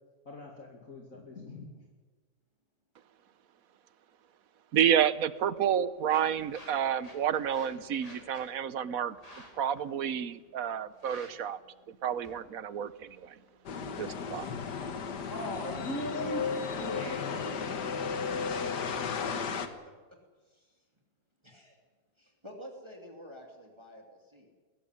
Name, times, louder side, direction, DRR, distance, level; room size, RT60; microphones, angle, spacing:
voice 1, 0.3-1.7 15.3-16.4 16.8-17.4, left 1 dB, 50° left, 0 dB, 2.8 m, -39 dB
voice 2, 4.7-9.2 9.6-11.6 12.0-13.3 14.0-14.4, right 9 dB, 60° right, 16 dB, 1.2 m, -29 dB
sound 1, 5.1-15.1, equal, 20° left, 4.9 m, -56 dB
sound 2, 13.7-19.7, left 5 dB, 75° left, 2.0 m, -34 dB
voice 3, 19.6-19.9 20.4-20.8 21.4-21.8 22.2-24.5, equal, 15° right, 2 dB, 3.1 m, -50 dB
20.5 x 15.5 x 10.0 m, 1.4 s
omnidirectional pair, 1.8 m